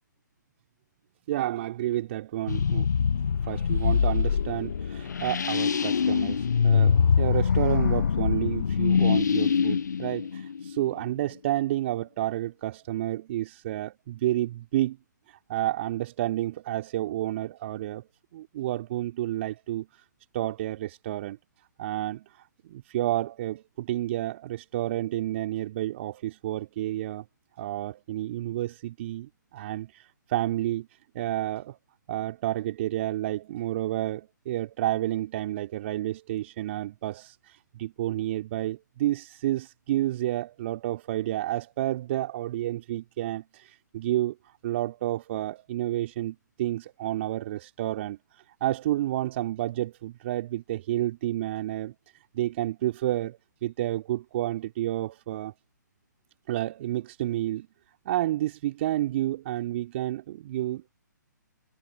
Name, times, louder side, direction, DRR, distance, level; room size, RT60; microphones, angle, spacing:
voice 1, 1.3-2.9 3.4-15.0 15.3-18.1 18.3-20.0 20.3-21.4 21.8-27.2 27.6-30.9 31.1-31.8 32.1-51.9 52.3-55.5 56.5-57.7 58.0-60.9, right 14 dB, 40° right, 2.9 m, -30 dB
sound 1, 2.5-11.1, left 6 dB, 65° left, 0.7 m, -24 dB
figure-of-eight pair, 130°, 10 cm